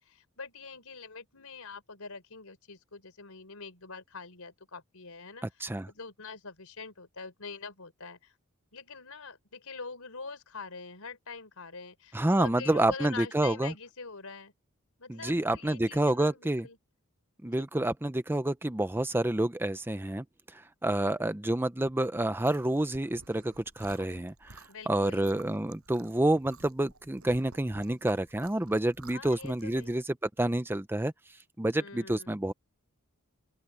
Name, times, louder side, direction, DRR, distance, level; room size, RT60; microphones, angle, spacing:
voice 1, 0.0-5.5 5.9-8.3 8.7-14.5 15.0-16.8 21.0-21.3 24.7-25.4 29.1-30.0 31.8-32.3, left 4 dB, 80° left, 4.1 m, -44 dB
voice 2, 12.1-13.7 15.1-16.7 17.4-20.2 20.5-31.1 31.6-32.5, right 1 dB, 10° right, 0.6 m, -28 dB
Chewing mastication, 22.2-30.0, right 3 dB, 75° right, 6.9 m, -54 dB
open air
head